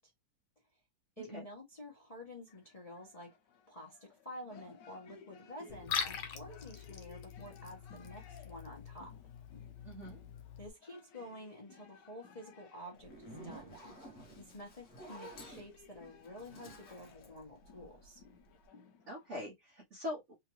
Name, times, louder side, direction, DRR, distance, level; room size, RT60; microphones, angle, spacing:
voice 1, 1.2-3.3 3.7-9.1 10.6-13.7 14.4-18.2, left 1 dB, 25° left, 1.0 m, -50 dB
sound 1, 2.5-19.4, left 5 dB, 70° left, 1.3 m, -60 dB
Liquid, 5.7-10.7, left 7 dB, 85° left, 1.6 m, -43 dB
voice 2, 9.8-10.2 19.1-20.3, left 1 dB, 45° right, 1.1 m, -43 dB
Zipper (clothing), 13.0-18.2, right 1 dB, 45° left, 1.2 m, -52 dB
3.6 x 2.8 x 3.0 m
omnidirectional pair, 2.1 m